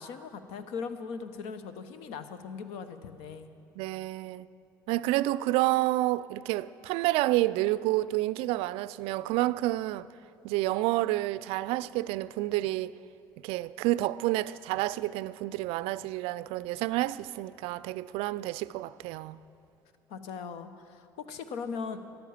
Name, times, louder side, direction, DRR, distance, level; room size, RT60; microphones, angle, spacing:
voice 1, 0.0-3.5 20.1-22.0, left 5 dB, 70° left, 0.9 m, -39 dB
voice 2, 3.8-4.5 4.9-10.1 10.4-12.9 13.4-19.4, right 17 dB, 70° right, 0.4 m, -29 dB
13.5 x 10.5 x 7.3 m
hypercardioid pair, 60°, 10 cm